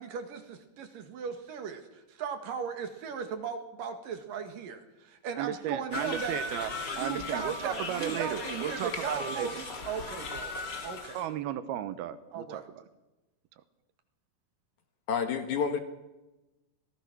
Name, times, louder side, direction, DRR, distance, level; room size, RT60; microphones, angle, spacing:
voice 1, 0.0-6.4 6.9-10.5 10.8-11.2 12.3-12.6, right 6 dB, 65° right, 6 dB, 3.4 m, -37 dB
voice 2, 5.4-6.7 7.0-9.6 11.1-12.8, right 11 dB, 90° right, 12 dB, 3.0 m, -35 dB
sound 1, 5.9-11.3, left 3 dB, 35° left, 2.4 m, -37 dB
voice 3, 15.1-15.8, left 6 dB, 60° left, 7 dB, 2.7 m, -29 dB
25.5 x 18.0 x 6.1 m, 1.0 s
omnidirectional pair, 4.4 m